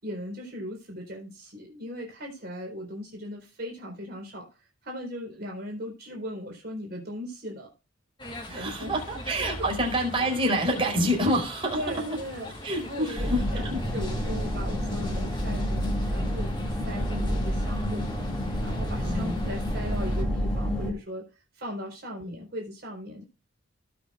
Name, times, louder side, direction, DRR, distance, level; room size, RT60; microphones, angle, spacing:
voice 1, 0.0-7.7 8.5-8.9 9.6-9.7 11.7-12.5 12.8-16.5 16.8-18.2 18.6-21.2 21.5-23.2, equal, 50° right, 0 dB, 4.2 m, -38 dB
sound 1, 8.2-20.2, left 1 dB, 25° left, 2.7 m, -42 dB
voice 2, 8.5-12.2 12.6-13.8 19.0-19.4 22.2-22.3, equal, 25° right, 0 dB, 4.9 m, -27 dB
sound 2, 13.2-20.9, equal, 5° left, 2.9 m, -29 dB
19.0 x 6.4 x 2.4 m, 0.30 s
head